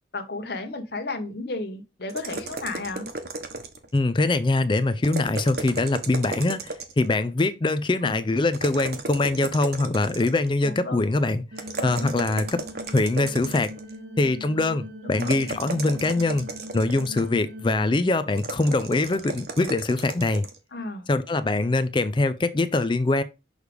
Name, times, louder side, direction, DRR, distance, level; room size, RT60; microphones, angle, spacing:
voice 1, 0.1-3.1 8.0-8.1 10.6-11.1 11.8-12.1 15.0-15.4 20.7-21.1, left 2 dB, 55° left, 1.0 m, -33 dB
sound 1, 2.1-4.0 5.0-7.1 8.5-10.5 11.6-13.9 15.1-17.4 18.4-20.6, right 3 dB, 55° right, 1.1 m, -35 dB
voice 2, 3.9-11.4 11.8-12.6 12.9-13.7 14.2-16.5 16.7-20.4 21.1-23.2, left 2 dB, 25° left, 0.4 m, -23 dB
sound 2, 11.5-18.0, equal, 80° right, 1.0 m, -41 dB
6.4 x 3.4 x 5.0 m
head